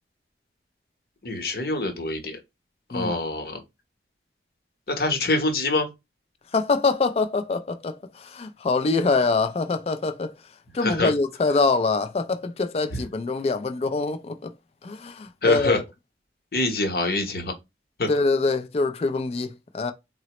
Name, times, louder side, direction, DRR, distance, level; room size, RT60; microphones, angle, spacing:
voice 1, 1.2-2.4 2.9-3.6 4.9-5.9 10.8-11.1 12.9-13.0 15.4-15.8 16.5-17.5 18.0-18.1, left 2 dB, 55° left, 0.8 m, -25 dB
voice 2, 6.5-10.3 10.7-14.5 14.8-15.8 18.1-19.9, left 3 dB, 35° left, 0.3 m, -24 dB
3.9 x 2.0 x 2.8 m
head